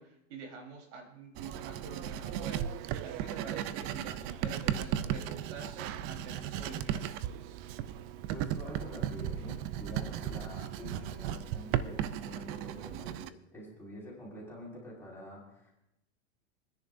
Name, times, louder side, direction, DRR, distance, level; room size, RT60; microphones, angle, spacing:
voice 1, 0.0-2.7 3.0-7.2, right 4 dB, 65° right, 2 dB, 4.0 m, -47 dB
Writing, 1.4-13.3, right 10 dB, 35° right, 0.6 m, -36 dB
voice 2, 8.3-15.7, equal, 5° left, -5 dB, 5.1 m, -46 dB
27.0 x 10.5 x 2.6 m, 0.82 s
supercardioid pair, 135°, 37 cm